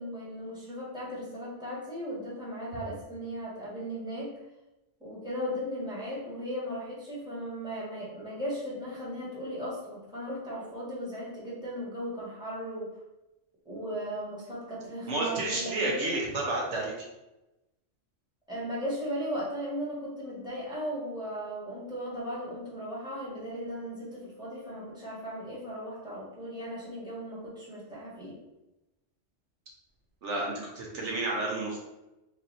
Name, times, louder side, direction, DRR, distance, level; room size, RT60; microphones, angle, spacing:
voice 1, 0.0-4.4 5.0-12.9 13.6-16.2 18.5-28.4, equal, 5° right, -8 dB, 1.3 m, -37 dB
voice 2, 15.1-16.9 30.2-31.8, right 2 dB, 70° right, -2 dB, 1.1 m, -31 dB
3.2 x 2.6 x 4.1 m, 0.96 s
omnidirectional pair, 1.3 m